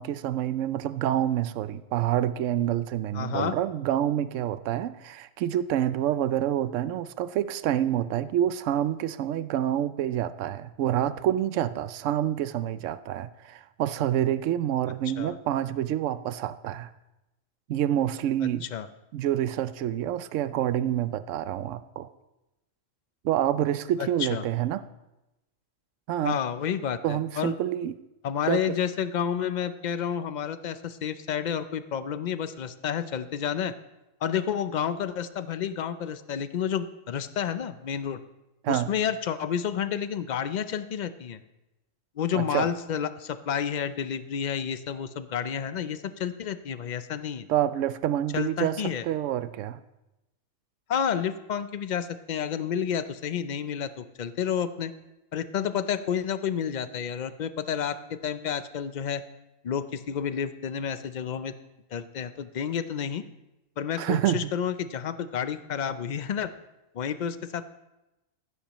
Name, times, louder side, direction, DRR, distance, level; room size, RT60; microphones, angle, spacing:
voice 1, 0.0-16.9 17.7-18.7 19.1-22.1 23.2-24.8 26.1-26.4 27.0-27.9 28.5-28.8 38.6-38.9 42.3-42.7 47.5-49.8 64.0-64.5, right 11 dB, 80° right, 14 dB, 0.9 m, -27 dB
voice 2, 3.1-3.5 15.2-15.3 18.6-18.9 24.0-24.4 26.2-27.5 28.2-33.7 34.2-38.2 38.7-41.4 42.2-47.5 48.3-49.0 50.9-54.9 55.3-59.2 59.6-61.5 61.9-63.2 63.8-66.5 66.9-67.8, left 8 dB, 50° left, 12 dB, 0.5 m, -30 dB
15.0 x 12.5 x 3.0 m, 0.96 s
omnidirectional pair, 1.3 m